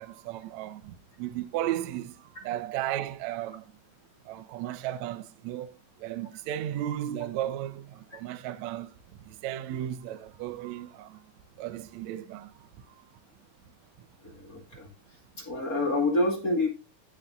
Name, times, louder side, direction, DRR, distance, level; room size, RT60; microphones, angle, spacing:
voice 1, 0.0-3.7 4.2-8.9 9.2-11.3 11.6-13.1 14.0-14.1, right 12 dB, 90° right, 1.5 m, -35 dB
voice 2, 14.2-14.9 15.4-16.7, left 2 dB, 30° left, 1.8 m, -27 dB
16.0 x 5.6 x 2.5 m
omnidirectional pair, 4.4 m